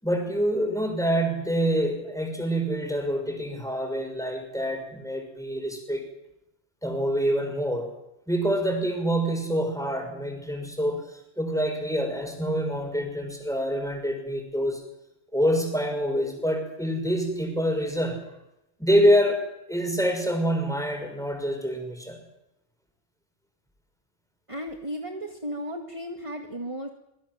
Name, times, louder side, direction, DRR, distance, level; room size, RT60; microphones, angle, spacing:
voice 1, 0.0-6.0 6.8-7.9 8.3-14.8 15.3-18.3 18.8-19.4 19.7-22.2, equal, 5° left, 4 dB, 6.0 m, -26 dB
voice 2, 24.5-26.9, equal, 30° right, 3 dB, 2.3 m, -34 dB
26.5 x 22.5 x 7.7 m, 0.85 s
omnidirectional pair, 1.2 m